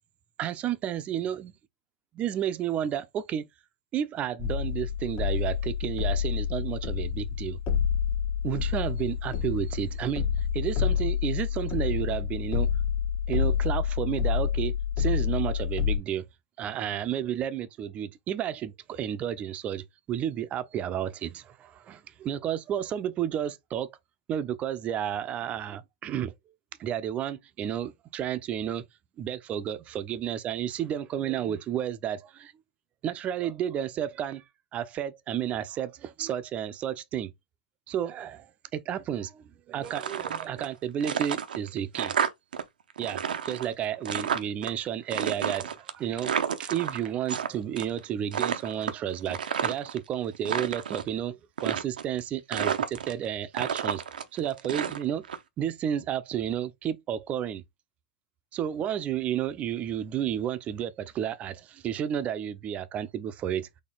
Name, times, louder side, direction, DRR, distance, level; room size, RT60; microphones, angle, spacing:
voice 1, 0.4-1.5 2.1-3.5 3.9-7.6 8.4-12.7 13.3-16.3 16.6-23.9 24.3-26.3 26.8-28.8 29.2-32.5 33.0-34.4 34.7-37.3 37.9-42.2 43.0-46.3 46.6-54.0 54.3-55.2 55.6-57.6 58.5-63.7, right 10 dB, 30° right, 0.5 m, -32 dB
sound 1, 4.4-16.0, left 8 dB, 40° left, 1.0 m, -28 dB
sound 2, 39.8-40.7 41.0-42.6 42.9-44.7 45.1-47.5 47.8-48.0 48.3-50.0 50.3-51.1 51.6-52.2 52.5-53.3 53.5-55.4, right 8 dB, 90° right, 0.7 m, -30 dB
4.3 x 2.7 x 3.9 m
hypercardioid pair, 125°, 5 cm